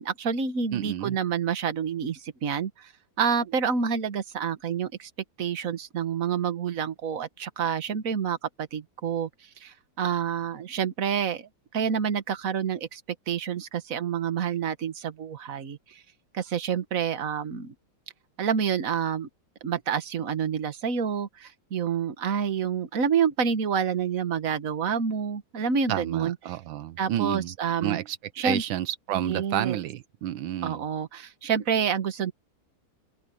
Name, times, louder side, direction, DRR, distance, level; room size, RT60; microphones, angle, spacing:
voice 1, 0.0-2.9 3.2-5.1 5.4-9.3 9.6-11.5 11.7-13.0 13.3-16.0 16.3-17.7 18.4-19.3 19.6-26.6 27.0-28.0 28.4-28.6 29.1-29.8 30.6-32.3, right 7 dB, 45° right, 1.7 m, -28 dB
voice 2, 0.7-1.2 25.9-27.5 27.8-28.2 28.4-30.8, right 12 dB, 85° right, 1.5 m, -30 dB
open air
omnidirectional pair, 2.1 m